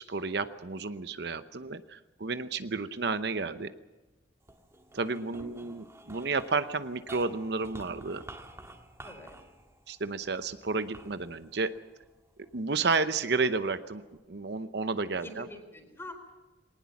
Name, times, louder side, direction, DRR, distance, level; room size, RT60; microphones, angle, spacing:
voice 1, 0.0-3.7 4.9-8.2 9.9-11.7 12.5-15.5, right 4 dB, 65° right, 11 dB, 0.9 m, -31 dB
sound 1, 4.4-12.9 13.5-14.2, right 1 dB, 15° right, 1.7 m, -51 dB
voice 2, 5.3-5.8 9.0-9.4 15.2-16.1, left 1 dB, 15° left, 5 dB, 4.2 m, -46 dB
21.0 x 19.0 x 7.2 m, 1.1 s
head